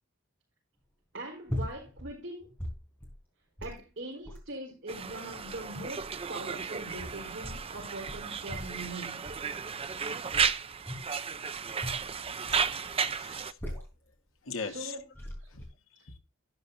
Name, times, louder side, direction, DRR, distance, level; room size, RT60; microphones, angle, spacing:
voice 1, 1.1-2.5 3.6-9.3 14.6-15.5, right 1 dB, 60° right, 4.4 m, -42 dB
sound 1, 1.5-2.1 2.4-3.2 3.6-3.8 4.3-4.5 5.2-6.1 6.8-7.7 8.1-8.9 9.3-9.6 10.3-11.2 11.8-12.7 13.3-14.1 14.8-14.9 15.1-15.7, left 1 dB, 10° left, 4.0 m, -40 dB
Conversation, 4.9-13.5, right 6 dB, 25° right, 0.5 m, -34 dB
voice 2, 12.5-13.6 14.4-15.0 15.5-15.7 15.9-16.2, left 5 dB, 70° left, 1.5 m, -41 dB
12.5 x 10.5 x 2.7 m
head